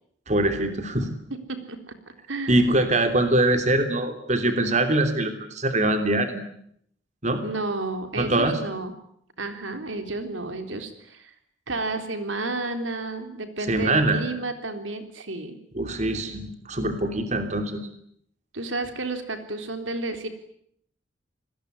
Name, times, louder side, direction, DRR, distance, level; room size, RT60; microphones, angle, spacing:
voice 1, 0.3-1.1 2.5-6.4 7.2-7.4 8.2-8.6 13.7-14.2 15.7-17.9, right 1 dB, 35° right, 7 dB, 3.0 m, -23 dB
voice 2, 1.5-1.9 2.3-2.8 7.4-8.9 9.4-11.3 11.7-15.6 18.5-20.3, right 2 dB, 85° right, 7 dB, 3.6 m, -31 dB
27.0 x 20.5 x 9.7 m, 0.71 s
head